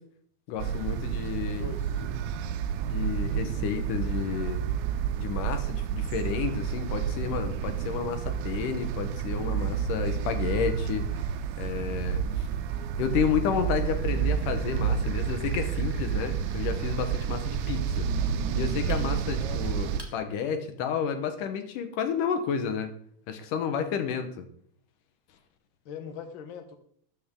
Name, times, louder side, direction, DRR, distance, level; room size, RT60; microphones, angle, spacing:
voice 1, 0.5-1.7 2.9-4.6 5.2-11.1 11.6-12.5 13.0-18.1 18.5-22.9 23.3-24.5, left 7 dB, 85° left, 8 dB, 2.8 m, -31 dB
sound 1, 0.6-20.0, right 8 dB, 85° right, 2.1 m, -30 dB
voice 2, 1.5-2.0 19.3-19.9 25.8-26.8, left 5 dB, 55° left, 7 dB, 1.4 m, -42 dB
sound 2, 13.8-20.1, right 2 dB, 20° right, 0.7 m, -42 dB
13.0 x 8.6 x 3.7 m, 0.63 s
omnidirectional pair, 3.6 m